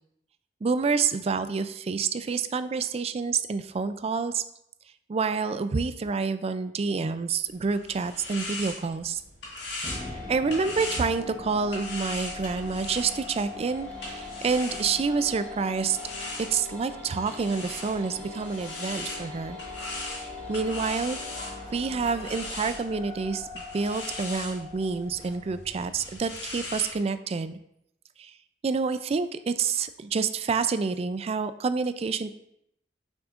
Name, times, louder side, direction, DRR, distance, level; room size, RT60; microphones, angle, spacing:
voice 1, 0.6-4.4 5.1-9.2 9.7-9.9 10.3-16.0 16.5-19.6 20.2-21.2 21.7-27.6 28.2-28.3 28.6-32.3, right 5 dB, 35° right, 12 dB, 0.3 m, -28 dB
sound 1, 7.5-15.3 15.9-27.0, left 2 dB, 70° left, 1.8 m, -40 dB
sound 2, 9.8-26.0, left 4 dB, 25° left, 1.3 m, -42 dB
sound 3, 13.3-23.5, equal, 5° left, 1.6 m, -46 dB
6.2 x 6.2 x 2.5 m, 0.77 s
head